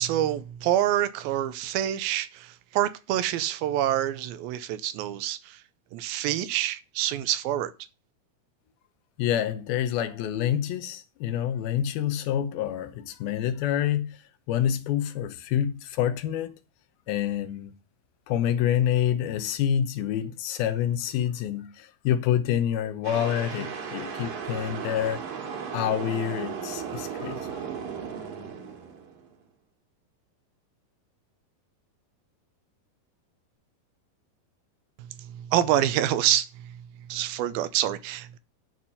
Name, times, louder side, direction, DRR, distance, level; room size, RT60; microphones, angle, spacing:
voice 1, 0.0-5.6 5.9-7.7 35.3-36.7 37.1-38.4, right 12 dB, 85° right, 2.4 m, -27 dB
voice 2, 9.2-14.1 14.5-16.5 17.1-17.7 18.3-25.2 25.7-27.5, left 10 dB, 80° left, 2.7 m, -27 dB
sound 1, 23.0-29.3, right 7 dB, 60° right, 2.9 m, -36 dB
11.0 x 4.5 x 5.5 m
omnidirectional pair, 4.3 m